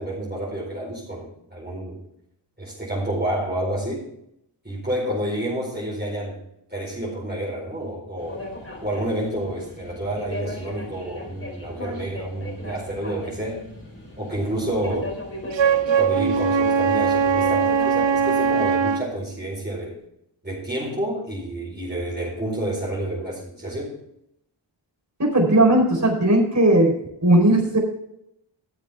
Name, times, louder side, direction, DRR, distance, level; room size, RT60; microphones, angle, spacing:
voice 1, 0.0-2.0 2.6-4.1 4.6-6.4 6.7-8.4 8.8-13.7 14.2-15.1 15.9-20.0 20.4-24.0, right 1 dB, 20° right, -4 dB, 4.6 m, -29 dB
sound 1, 8.2-18.7, left 1 dB, 25° left, 4.5 m, -38 dB
Wind instrument woodwind instrument, 15.5-19.1, right 6 dB, 65° right, 0.8 m, -20 dB
voice 2, 25.2-26.9 27.2-27.8, right 1 dB, 35° right, 0 dB, 4.4 m, -17 dB
14.5 x 7.6 x 3.6 m, 0.77 s
cardioid pair, 50°, 49 cm